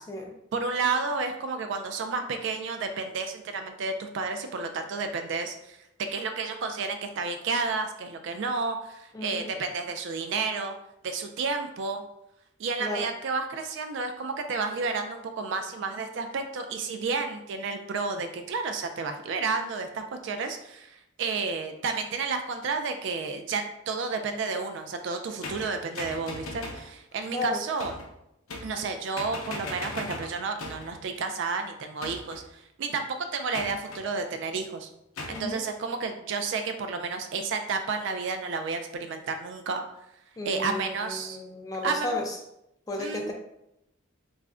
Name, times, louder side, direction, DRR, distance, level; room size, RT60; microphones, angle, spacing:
voice 1, 0.5-5.8 6.1-10.7 11.0-12.0 12.6-28.0 28.6-34.9 35.3-39.8 40.5-41.4 41.8-42.2 43.0-43.3, right 4 dB, 60° right, 6 dB, 0.3 m, -31 dB
voice 2, 9.1-9.5 12.8-13.1 27.3-27.6 35.3-35.6 40.4-42.4 42.9-43.3, left 2 dB, 15° left, 1 dB, 0.3 m, -33 dB
sound 1, 25.4-26.9 27.8-28.1 28.5-28.9 29.2-31.0 32.0-32.5 33.5-34.1 35.2-35.5, left 2 dB, 80° left, 0.6 m, -38 dB
2.4 x 2.1 x 3.5 m, 0.82 s
head